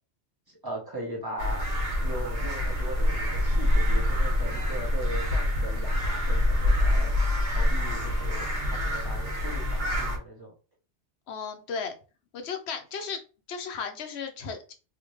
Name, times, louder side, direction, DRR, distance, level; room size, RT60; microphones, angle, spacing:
voice 1, 0.6-1.7 2.0-7.1 7.5-10.5, right 1 dB, 20° right, -2 dB, 1.1 m, -39 dB
sound 1, 1.4-10.2, left 1 dB, 60° right, 1.6 m, -26 dB
voice 2, 11.3-11.9 12.3-13.2 13.5-14.7, left 5 dB, 70° left, 5 dB, 1.0 m, -35 dB
3.5 x 2.7 x 3.1 m, 0.34 s
omnidirectional pair, 1.2 m